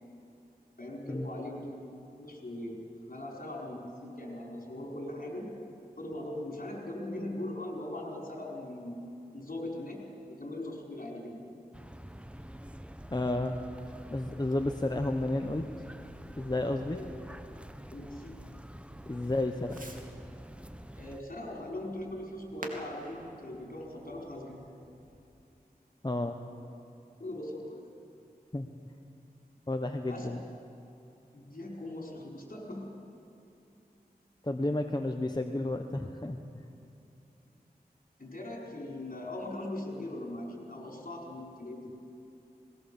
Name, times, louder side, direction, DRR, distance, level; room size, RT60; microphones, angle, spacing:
voice 1, 0.8-1.7 2.2-5.6 6.0-9.0 9.3-10.0 10.3-11.4 16.9-17.0 17.9-18.4 20.9-24.7 27.2-27.8 30.1-30.3 31.3-32.9 38.2-42.0, left 1 dB, 60° left, -2 dB, 4.8 m, -40 dB
sound 1, 11.7-21.2, equal, 5° right, 0.8 m, -47 dB
voice 2, 13.1-13.6 14.1-15.7 16.4-17.0 19.1-19.8 26.0-26.4 28.5-28.9 29.7-30.4 34.4-36.6, left 1 dB, 25° left, 5 dB, 1.0 m, -32 dB
Fireworks, 13.8-25.2, right 1 dB, 55° right, 2.7 m, -53 dB
20.0 x 18.5 x 7.1 m, 2.7 s
wide cardioid pair, 45°, 16 cm